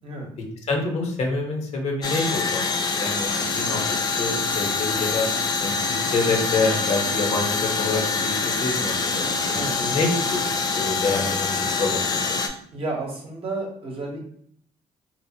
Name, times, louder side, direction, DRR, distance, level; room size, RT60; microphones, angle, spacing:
voice 1, 0.7-3.8 4.2-5.3 5.6-10.4 10.7-12.4, left 3 dB, 60° left, 1 dB, 0.8 m, -27 dB
sound 1, 2.0-12.5, left 4 dB, 30° left, 0.4 m, -25 dB
voice 2, 12.7-14.3, right 2 dB, 50° right, -1 dB, 0.9 m, -32 dB
2.8 x 2.0 x 2.7 m, 0.63 s
supercardioid pair, 75°, 12 cm